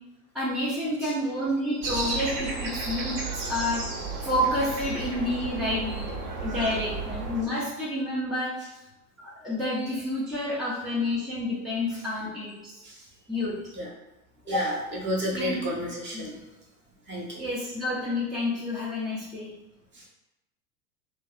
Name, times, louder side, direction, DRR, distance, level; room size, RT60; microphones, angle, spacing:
voice 1, 0.3-3.8 4.2-6.2 6.4-8.5 9.2-12.8 13.3-13.6 14.5-14.7 15.3-15.8 16.1-16.2 17.4-19.5, left 1 dB, ahead, -9 dB, 0.4 m, -29 dB
sound 1, 1.8-7.4, right 3 dB, 60° right, 0.8 m, -33 dB
voice 2, 6.3-6.7 12.8-13.0 13.7-13.9 14.5-14.7 15.0-16.4 17.1-17.4 19.9-20.0, equal, 25° right, -3 dB, 0.8 m, -32 dB
2.7 x 2.2 x 2.3 m, 0.92 s
hypercardioid pair, 90°, 44 cm